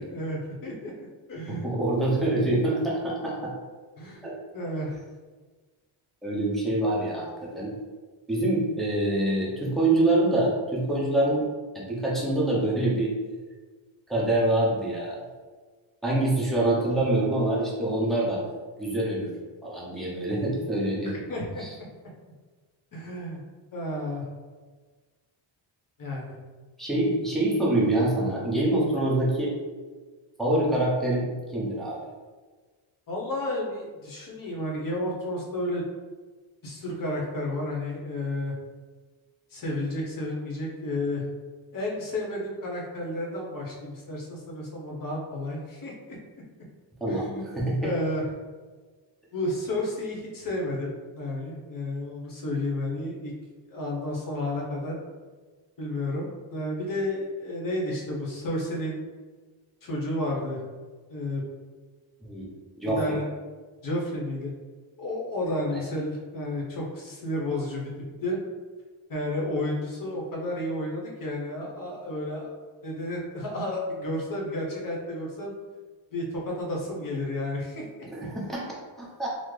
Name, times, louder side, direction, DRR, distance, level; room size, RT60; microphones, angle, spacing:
voice 1, 0.0-1.7 4.0-4.3 4.5-5.0 21.0-21.9 22.9-23.4 23.7-24.3 26.0-26.3 33.1-35.8 36.6-38.5 39.5-41.2 41.7-45.9 47.1-47.4 47.8-48.3 49.3-53.3 53.7-55.0 55.8-59.0 59.8-60.6 61.1-61.4 63.0-63.2 63.8-64.5 65.0-67.9 68.2-68.4 69.1-72.6 72.8-75.5 76.1-78.1, left 1 dB, 45° left, -2 dB, 0.8 m, -31 dB
voice 2, 1.5-3.5 4.2-4.3 6.2-7.7 8.3-11.5 11.7-13.1 14.1-15.2 16.0-18.4 18.8-19.3 19.6-21.1 21.6-21.7 26.8-29.5 30.4-31.3 31.5-32.0 47.0-47.3 47.6-47.9 62.2-62.5 62.8-63.2 65.7-65.8 78.1-78.7 79.0-79.3, right 1 dB, ahead, -6 dB, 0.6 m, -25 dB
3.7 x 2.0 x 3.1 m, 1.4 s
wide cardioid pair, 150°, 48 cm